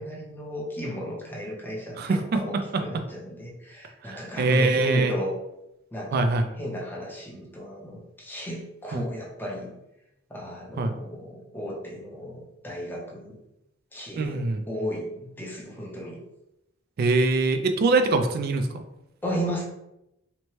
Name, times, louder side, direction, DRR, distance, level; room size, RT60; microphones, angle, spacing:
voice 1, 0.0-5.4 5.9-9.7 10.3-13.4 13.9-14.4 14.7-16.2 19.2-19.6, equal, 10° left, -3 dB, 0.6 m, -34 dB
voice 2, 2.0-2.4 4.0-5.1 6.1-6.5 8.9-9.0 10.8-11.0 14.2-14.6 17.0-18.8, right 3 dB, 50° right, 8 dB, 0.3 m, -23 dB
2.8 x 2.1 x 3.0 m, 0.86 s
head